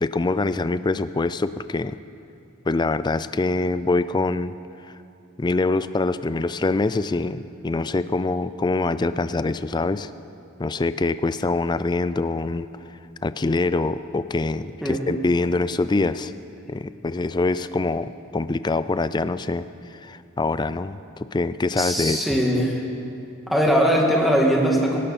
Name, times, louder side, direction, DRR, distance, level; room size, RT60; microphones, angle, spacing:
voice 1, 0.0-2.0 2.7-4.6 5.4-10.1 10.6-12.7 13.2-16.3 16.7-19.7 20.0-22.4, left 3 dB, 20° left, 14 dB, 0.3 m, -24 dB
voice 2, 21.8-22.8 23.5-25.0, equal, ahead, -2 dB, 1.9 m, -20 dB
18.5 x 17.5 x 4.2 m, 2.7 s
head